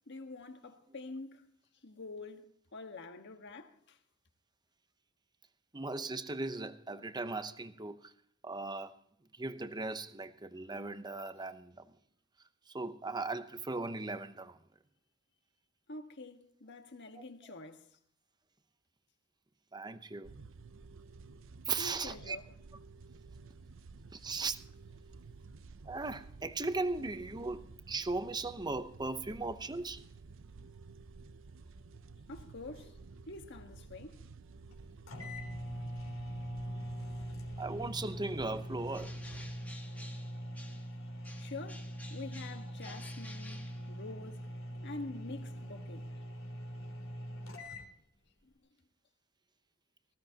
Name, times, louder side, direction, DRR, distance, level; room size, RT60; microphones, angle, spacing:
voice 1, 0.1-1.5 1.8-4.0 15.9-17.8 21.8-22.4 32.3-33.0 33.3-34.2 41.4-44.5 44.8-46.1, left 2 dB, 60° left, 1.5 m, -46 dB
voice 2, 5.7-8.1 8.4-8.9 9.4-11.9 12.7-14.6 17.1-17.2 19.7-20.3 21.7-22.4 24.1-24.6 25.8-30.0 37.6-39.2 42.9-43.0, right 3 dB, 20° right, 0.8 m, -38 dB
sound 1, 20.2-39.5, right 4 dB, 70° right, 0.6 m, -53 dB
sound 2, 34.7-34.8 35.1-47.9, equal, 75° left, 3.4 m, -42 dB
Bird, 38.9-41.0 41.2-44.3, left 2 dB, 10° left, 1.8 m, -53 dB
19.5 x 16.0 x 2.9 m
head